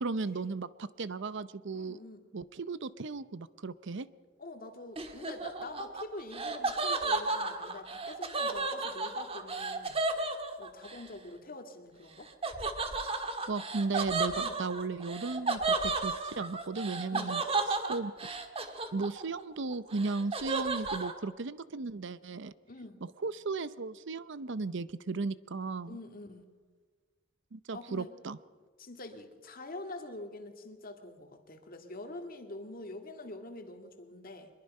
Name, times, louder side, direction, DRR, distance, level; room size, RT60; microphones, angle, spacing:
voice 1, 0.0-2.0 2.3-4.1 13.5-17.4 17.9-18.1 18.9-22.5 23.0-26.0 27.5-28.4, right 3 dB, 65° right, 16 dB, 0.7 m, -35 dB
voice 2, 1.7-2.2 4.4-10.0 10.6-12.3 14.4-14.6 17.1-17.4 22.7-23.0 25.8-26.4 27.7-28.1 28.8-34.5, left 2 dB, 45° left, 5 dB, 2.1 m, -45 dB
Laughter, 5.0-11.0 12.4-19.4 19.7-21.1, right 3 dB, 30° right, 1.6 m, -33 dB
23.5 x 22.0 x 5.5 m, 1.4 s
head